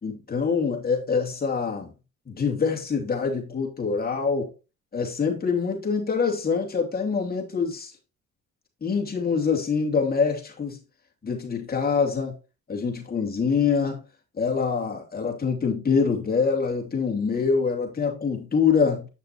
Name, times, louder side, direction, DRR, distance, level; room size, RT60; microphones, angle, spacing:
voice 1, 0.0-1.9 2.3-4.5 4.9-7.9 8.8-10.8 11.2-12.3 12.7-14.0 14.4-19.1, left 5 dB, 30° left, 2.7 m, -25 dB
8.5 x 6.6 x 2.9 m
cardioid pair, 90°, 31 cm